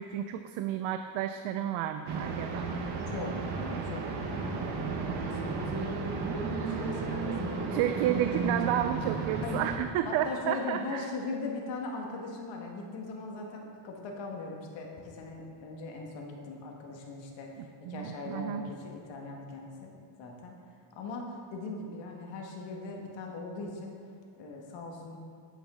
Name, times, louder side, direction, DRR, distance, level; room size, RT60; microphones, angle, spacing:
voice 1, 0.0-2.7 7.7-11.1 17.8-18.7, right 11 dB, 90° right, 9 dB, 0.5 m, -31 dB
sound 1, 2.1-9.8, right 4 dB, 55° right, 1.1 m, -33 dB
voice 2, 3.1-6.1 6.7-7.9 8.4-8.8 9.4-9.6 10.0-19.9 20.2-20.5 20.9-24.0 24.4-25.2, left 3 dB, 65° left, 0 dB, 1.6 m, -40 dB
9.2 x 8.2 x 3.7 m, 2.3 s
cardioid pair, 165°, 47 cm